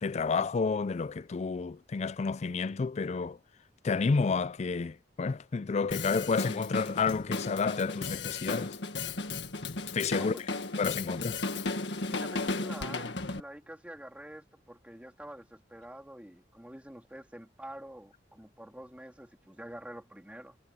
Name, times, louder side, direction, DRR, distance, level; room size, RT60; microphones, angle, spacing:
voice 1, 0.0-3.4 3.8-8.8 9.9-10.3 10.8-11.4, left 4 dB, 40° left, 0.4 m, -30 dB
Drum kit, 5.9-13.4, left 3 dB, 70° left, 1.8 m, -35 dB
voice 2, 10.2-10.6 12.1-20.6, right 1 dB, 10° right, 2.3 m, -47 dB
head